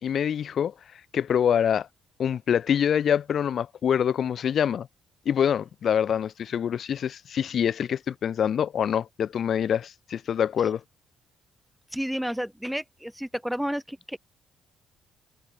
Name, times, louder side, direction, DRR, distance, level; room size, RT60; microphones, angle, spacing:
voice 1, 0.0-0.7 1.1-1.9 2.2-4.9 5.3-10.8, left 8 dB, 60° left, 5.6 m, -25 dB
voice 2, 11.9-14.2, equal, ahead, 2.6 m, -31 dB
cardioid pair, 90°, 0 cm